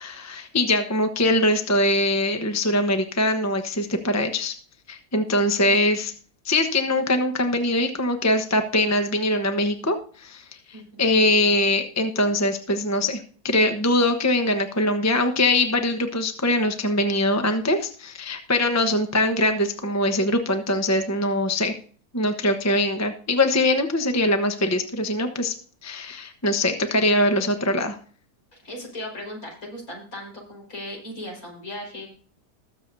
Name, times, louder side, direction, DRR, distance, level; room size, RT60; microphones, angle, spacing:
voice 1, 0.0-4.5 4.9-6.1 6.4-21.7 22.1-25.5 25.8-28.0, left 1 dB, 15° left, 6 dB, 0.8 m, -22 dB
voice 2, 10.7-11.1 28.6-32.2, left 1 dB, 60° left, -1 dB, 5.4 m, -37 dB
20.5 x 7.5 x 2.7 m, 0.43 s
omnidirectional pair, 1.7 m